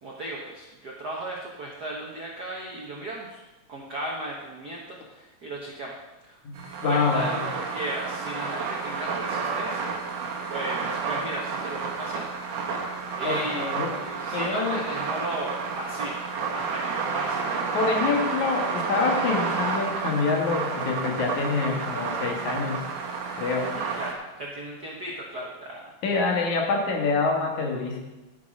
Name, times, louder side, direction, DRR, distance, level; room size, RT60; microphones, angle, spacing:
voice 1, 0.0-3.4 3.7-6.0 6.2-6.4 6.8-12.3 13.2-16.2 16.5-17.5 18.0-18.2 23.7-25.9, right 1 dB, 85° right, -2 dB, 0.8 m, -36 dB
sound 1, 6.6-24.1, right 5 dB, 60° right, 2.1 m, -30 dB
voice 2, 6.8-7.4 13.2-13.9 14.3-14.8 17.7-22.8 23.4-23.7 26.0-28.0, left 4 dB, 65° left, 1 dB, 2.8 m, -26 dB
12.5 x 6.2 x 5.3 m, 1.1 s
omnidirectional pair, 3.7 m